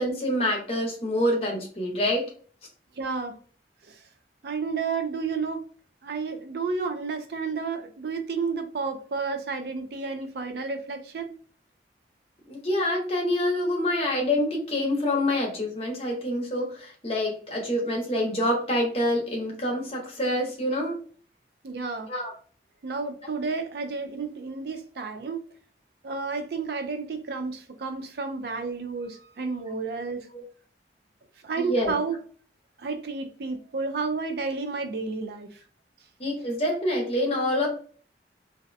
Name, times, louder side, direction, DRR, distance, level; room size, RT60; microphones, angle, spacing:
voice 1, 0.0-2.2 12.5-21.0 22.1-22.3 30.3-30.4 31.6-31.9 36.2-37.7, left 1 dB, 35° left, 0.8 m, -26 dB
voice 2, 3.0-3.4 3.9-4.0 4.4-5.6 6.0-11.3 21.6-22.1 22.8-25.4 26.0-30.3 31.4-32.2 32.8-35.6, right 4 dB, 65° right, 0.4 m, -31 dB
2.6 x 2.1 x 2.5 m
head